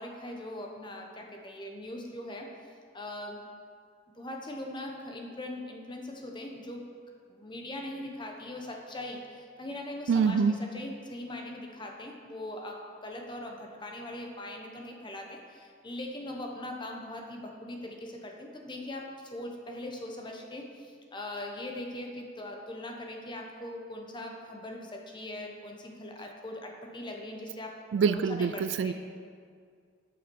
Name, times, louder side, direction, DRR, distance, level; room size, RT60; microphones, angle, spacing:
voice 1, 0.0-2.5 2.9-3.4 4.1-6.8 7.3-27.8 28.0-28.9, left 1 dB, 25° left, 1 dB, 1.0 m, -41 dB
voice 2, 10.1-10.6 27.9-28.9, right 6 dB, 75° right, 12 dB, 0.3 m, -25 dB
8.4 x 5.8 x 5.3 m, 2.1 s
head